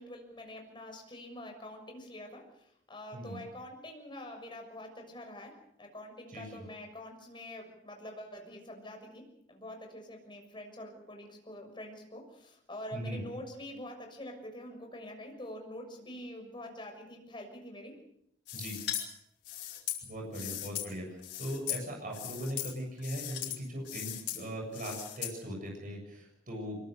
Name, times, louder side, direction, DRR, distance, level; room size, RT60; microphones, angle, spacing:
voice 1, 0.0-9.2 9.5-18.0 20.3-20.7, left 1 dB, 25° left, 3 dB, 6.6 m, -46 dB
voice 2, 6.3-6.7 12.9-13.2 18.5-18.8 20.0-21.0 21.4-26.8, right 1 dB, 50° right, 1 dB, 7.4 m, -39 dB
sound 1, 18.5-19.1 19.4-20.9 21.2-21.8 22.1-22.7 23.0-23.6 23.8-24.4 24.7-25.3, left 12 dB, 90° left, 5.1 m, -38 dB
25.5 x 23.0 x 6.8 m, 0.74 s
head